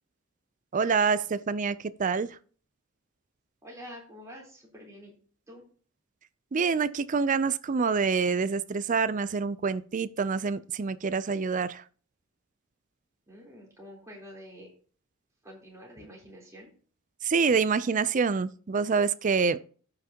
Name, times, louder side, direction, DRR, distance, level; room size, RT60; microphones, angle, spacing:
voice 1, 0.7-2.4 6.5-11.8 17.2-19.6, right 5 dB, 40° right, 0.4 m, -26 dB
voice 2, 3.6-5.2 5.5-5.6 13.3-14.7 15.4-16.7, equal, 15° right, 3.6 m, -47 dB
16.0 x 5.9 x 2.9 m
head